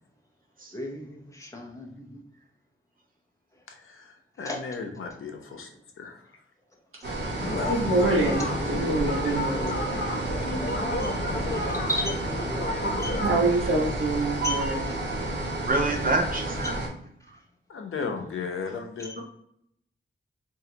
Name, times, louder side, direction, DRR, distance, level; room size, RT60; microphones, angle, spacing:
voice 1, 0.7-2.2 4.4-4.6 11.0-12.1 13.0-13.2 14.4-15.0, left 1 dB, 15° left, 0.7 m, -35 dB
voice 2, 3.7-5.7 6.0-6.4 7.4-7.7 17.7-19.2, left 5 dB, 85° left, 0.7 m, -35 dB
sound 1, 7.0-16.9, right 1 dB, 60° right, 1.2 m, -31 dB
voice 3, 7.0-9.9 12.8-14.8, right 2 dB, 80° right, 1.3 m, -26 dB
sound 2, 7.4-13.4, left 1 dB, 50° left, 0.7 m, -32 dB
voice 4, 14.2-15.1 15.7-16.8, right 2 dB, 45° right, 0.6 m, -28 dB
4.7 x 2.5 x 2.8 m
wide cardioid pair, 155°, 21 cm